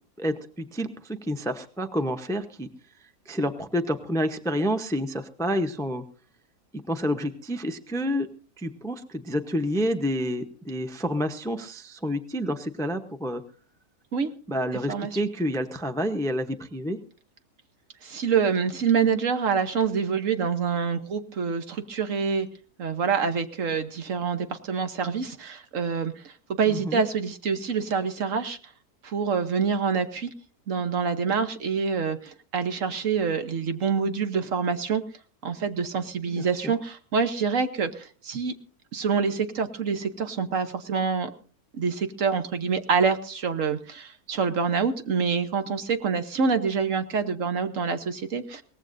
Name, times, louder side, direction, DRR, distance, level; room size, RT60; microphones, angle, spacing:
voice 1, 0.2-2.7 3.3-6.0 6.9-8.3 8.6-13.4 14.5-17.0 26.6-27.0 36.3-36.7, equal, 5° left, 9 dB, 0.6 m, -29 dB
voice 2, 14.9-15.2 18.0-22.5 22.8-28.6 29.0-30.3 30.7-35.0 35.4-38.5 38.9-41.3 41.7-48.6, right 6 dB, 60° right, 9 dB, 1.3 m, -26 dB
22.5 x 18.5 x 2.6 m, 0.39 s
omnidirectional pair, 1.6 m